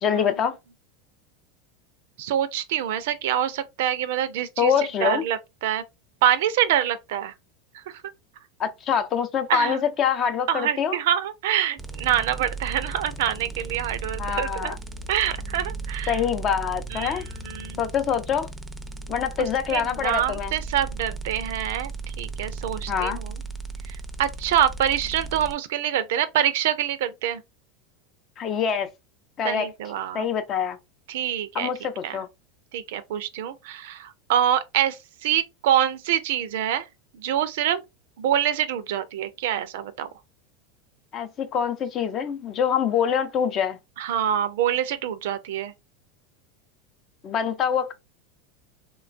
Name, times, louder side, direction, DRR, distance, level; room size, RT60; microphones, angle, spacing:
voice 1, 0.0-0.6 4.6-5.2 8.6-11.0 14.2-14.8 16.1-17.2 17.8-18.5 19.1-20.5 22.9-23.2 28.4-28.9 29.4-29.7 30.1-30.8 31.5-32.3 41.1-43.8 47.2-47.9, left 7 dB, 40° left, 0.5 m, -25 dB
voice 2, 2.2-4.7 5.0-5.8 6.2-7.3 7.7-8.0 9.5-9.8 10.5-14.7 15.1-16.2 16.9-17.8 19.4-21.9 22.2-23.3 23.9-27.4 29.4-30.3 31.1-31.7 32.0-32.2 32.7-36.8 37.1-37.8 38.2-40.1 44.0-45.7, right 10 dB, 70° right, 0.4 m, -26 dB
sound 1, 11.8-25.5, right 3 dB, 5° right, 0.5 m, -36 dB
3.1 x 2.2 x 2.4 m
hypercardioid pair, 100°, 0 cm